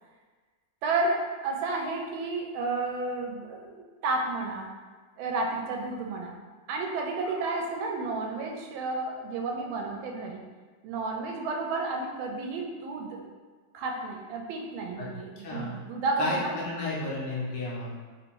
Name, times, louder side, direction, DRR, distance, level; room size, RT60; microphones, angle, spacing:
voice 1, 0.8-4.7 5.2-6.3 6.7-10.4 10.8-13.3 13.7-16.6, right 3 dB, 80° right, 1 dB, 1.3 m, -31 dB
voice 2, 15.4-15.8 16.2-17.9, left 2 dB, 70° left, -5 dB, 1.2 m, -32 dB
3.5 x 2.6 x 2.9 m, 1.4 s
omnidirectional pair, 2.2 m